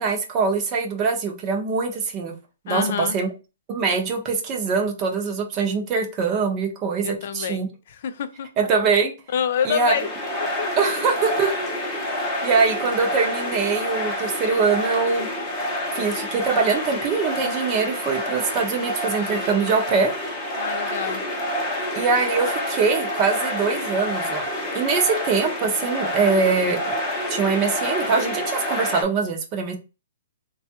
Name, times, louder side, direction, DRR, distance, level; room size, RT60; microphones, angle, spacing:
voice 1, 0.0-2.3 2.6-3.3 3.7-7.7 8.6-9.1 9.6-10.0 10.8-11.6 12.4-15.3 15.9-20.1 21.9-24.5 24.7-27.0 27.3-29.8, right 5 dB, 20° right, 0.7 m, -23 dB
voice 2, 2.7-3.2 7.0-8.5 9.3-10.1 10.4-10.7 20.6-21.2, left 8 dB, 45° left, 0.4 m, -27 dB
sound 1, 9.5-29.0, left 1 dB, 15° left, 0.7 m, -28 dB
3.4 x 2.3 x 2.8 m
hypercardioid pair, 165°, 0 cm